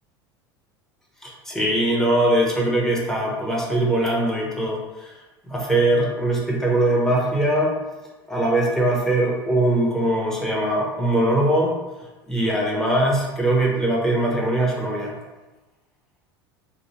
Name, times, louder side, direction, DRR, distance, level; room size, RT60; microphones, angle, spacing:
voice 1, 1.2-5.1 5.5-7.8 8.3-11.8 12.3-15.1, right 1 dB, 5° left, -3 dB, 0.8 m, -21 dB
2.7 x 2.3 x 2.8 m, 1.1 s
hypercardioid pair, 85°, 12 cm